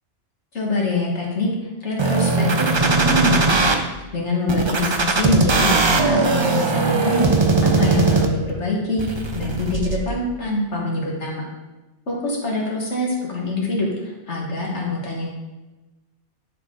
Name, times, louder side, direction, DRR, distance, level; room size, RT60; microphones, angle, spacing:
voice 1, 0.5-1.5 1.8-7.3 7.6-9.1 9.3-11.5 12.1-15.3, left 1 dB, 80° left, -3 dB, 2.0 m, -24 dB
sound 1, 2.0-3.7 4.5-8.5 9.0-10.0, right 3 dB, 35° right, 0.5 m, -19 dB
9.5 x 4.6 x 3.8 m, 1.1 s
omnidirectional pair, 1.2 m